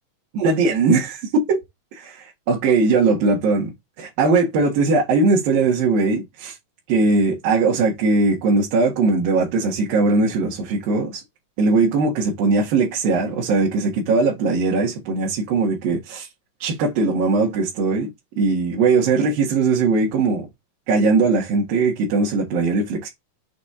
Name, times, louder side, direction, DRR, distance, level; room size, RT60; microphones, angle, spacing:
voice 1, 0.3-1.1 1.3-1.6 1.9-6.6 6.9-11.2 11.6-16.3 16.6-18.1 18.4-20.5 20.9-23.1, right 3 dB, 85° right, 3.7 m, -20 dB
8.5 x 2.9 x 4.9 m
omnidirectional pair, 4.0 m